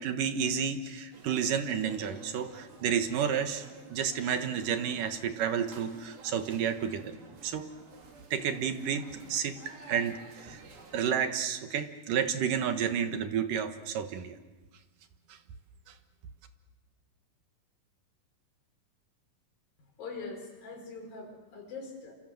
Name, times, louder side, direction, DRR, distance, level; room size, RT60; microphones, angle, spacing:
voice 1, 0.0-7.1 7.4-7.7 8.3-9.6 9.9-10.6 10.9-14.4 15.3-15.4, right 8 dB, 70° right, 8 dB, 2.9 m, -31 dB
sound 1, 1.1-11.0, right 4 dB, 90° right, 5.3 m, -52 dB
voice 2, 20.0-22.2, left 4 dB, 75° left, 3 dB, 6.4 m, -42 dB
27.5 x 27.5 x 7.8 m, 1.2 s
omnidirectional pair, 4.1 m